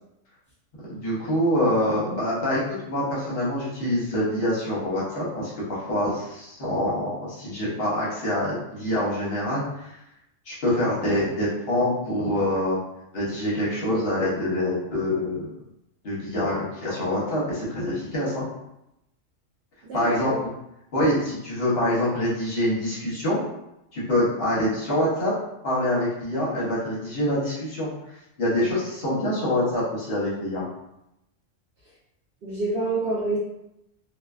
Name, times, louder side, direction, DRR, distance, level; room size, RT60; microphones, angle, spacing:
voice 1, 0.9-10.0 10.5-12.8 13.1-15.5 16.0-18.4 19.9-20.3 20.9-23.4 23.9-25.3 25.6-27.9 28.4-30.6, left 1 dB, 55° left, -7 dB, 0.9 m, -25 dB
voice 2, 19.8-20.2 32.4-33.4, right 2 dB, 60° right, -6 dB, 0.6 m, -27 dB
2.4 x 2.2 x 2.3 m, 0.85 s
omnidirectional pair, 1.3 m